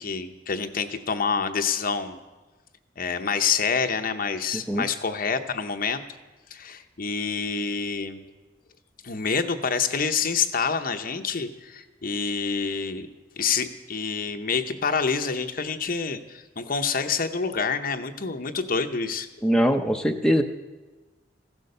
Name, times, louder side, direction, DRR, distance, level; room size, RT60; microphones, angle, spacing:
voice 1, 0.0-2.2 3.0-6.0 6.5-8.2 9.0-13.1 13.4-19.3, left 5 dB, 50° left, 7 dB, 0.8 m, -27 dB
voice 2, 19.4-20.4, equal, 5° left, 3 dB, 0.6 m, -21 dB
15.5 x 11.0 x 6.7 m, 1.2 s
head